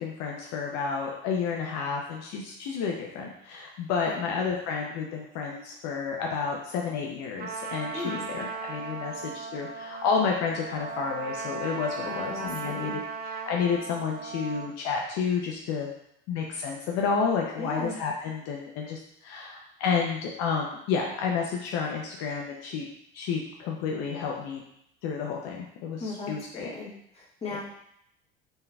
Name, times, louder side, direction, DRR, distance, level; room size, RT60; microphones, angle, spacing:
voice 1, 0.0-13.0 13.3-15.9 16.3-22.9 23.1-24.6 25.0-26.7 27.5-27.6, left 5 dB, 65° left, 0 dB, 0.6 m, -30 dB
Trumpet, 7.4-14.7, right 5 dB, 35° right, 0.5 m, -37 dB
voice 2, 12.0-12.9 17.6-17.9 26.0-27.6, left 2 dB, 20° left, -5 dB, 1.5 m, -37 dB
4.0 x 3.7 x 2.2 m, 0.74 s
hypercardioid pair, 75°, 29 cm